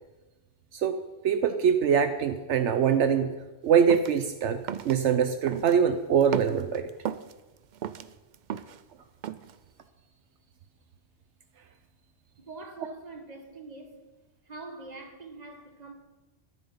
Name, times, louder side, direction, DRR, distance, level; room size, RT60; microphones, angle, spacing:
voice 1, 1.2-3.3 3.6-6.9, right 7 dB, 75° right, 1.0 m, -23 dB
sound 1, 3.9-4.2 4.7-5.0 5.5-5.8 6.2-7.3 7.7-8.8 9.2-9.5, right 9 dB, 55° right, 0.5 m, -34 dB
voice 2, 12.4-14.1 14.5-15.9, right 3 dB, 35° right, 1.8 m, -44 dB
14.0 x 11.0 x 5.6 m
omnidirectional pair, 1.2 m